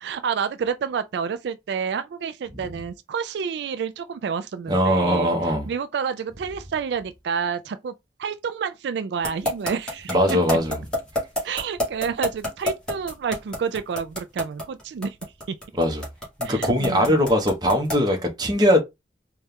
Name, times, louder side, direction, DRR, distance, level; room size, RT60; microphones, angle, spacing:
voice 1, 0.0-5.3 5.7-7.9 8.2-10.2 10.5-10.6 11.4-15.2 15.5-15.6 16.4-17.2, right 6 dB, 75° right, 0.3 m, -29 dB
voice 2, 4.7-5.7 10.1-10.8 15.8-16.0 16.4-18.8, equal, 25° right, 0.9 m, -21 dB
sound 1, 9.2-18.1, left 1 dB, 5° left, 1.4 m, -27 dB
4.1 x 2.3 x 3.4 m
head